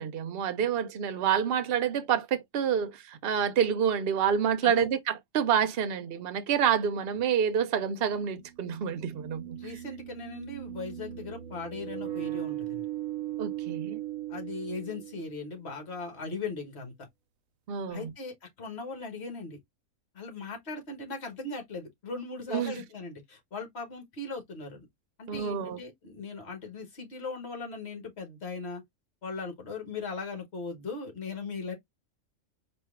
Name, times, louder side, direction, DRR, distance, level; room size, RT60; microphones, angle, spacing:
voice 1, 0.0-5.0 5.3-9.6 13.4-14.0 17.7-18.1 22.5-22.7 25.3-25.8, right 8 dB, 55° right, 0.8 m, -28 dB
sound 1, 7.2-7.3 8.8-15.6, right 14 dB, 85° right, 1.1 m, -38 dB
voice 2, 9.6-12.9 14.3-16.9 17.9-19.6 20.1-24.9 25.2-28.8 29.2-31.7, left 4 dB, 55° left, 1.7 m, -38 dB
4.3 x 2.5 x 3.6 m
omnidirectional pair, 1.4 m